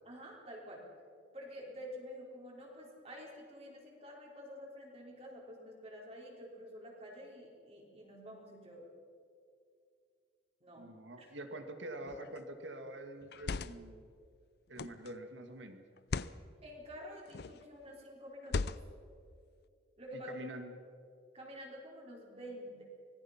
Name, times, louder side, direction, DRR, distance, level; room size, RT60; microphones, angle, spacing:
voice 1, 0.0-0.9 1.3-8.9 10.6-11.3 16.6-18.8 20.0-20.4 21.3-22.8, equal, 30° right, -1 dB, 3.9 m, -49 dB
voice 2, 10.8-14.1 14.7-15.8 20.1-20.8, right 1 dB, 75° right, 6 dB, 1.8 m, -46 dB
sound 1, 12.1-12.4 13.2-13.9 14.8-15.1 16.0-16.4 17.3-17.6 18.4-19.1, left 4 dB, 55° left, 0.5 m, -38 dB
25.5 x 18.5 x 5.8 m, 2.4 s
head